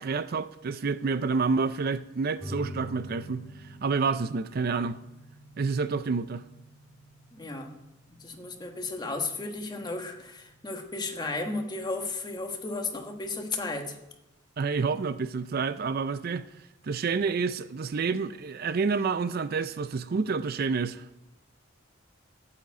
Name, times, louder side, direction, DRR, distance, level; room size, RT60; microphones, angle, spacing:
voice 1, 0.0-5.0 5.6-6.4 14.6-16.4 16.8-21.1, right 4 dB, 50° right, 0.4 m, -29 dB
sound 1, 2.4-13.4, equal, 5° left, 2.5 m, -47 dB
voice 2, 7.3-7.7 8.2-14.0, left 3 dB, 20° left, 1.3 m, -34 dB
9.0 x 8.7 x 8.2 m
head